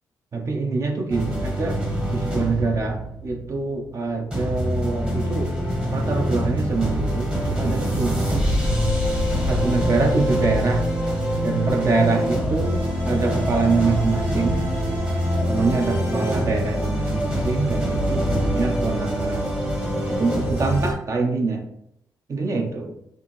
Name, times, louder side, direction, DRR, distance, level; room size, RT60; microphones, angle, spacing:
voice 1, 0.3-1.8 2.1-5.5 5.9-8.5 9.4-10.8 11.4-14.6 15.5-19.6 20.1-21.6 22.3-22.9, right 3 dB, 45° right, 2 dB, 0.8 m, -25 dB
sound 1, 1.1-3.9 4.3-20.9, equal, 15° right, 1.1 m, -24 dB
4.7 x 2.8 x 3.1 m, 0.78 s
cardioid pair, 95°, 7 cm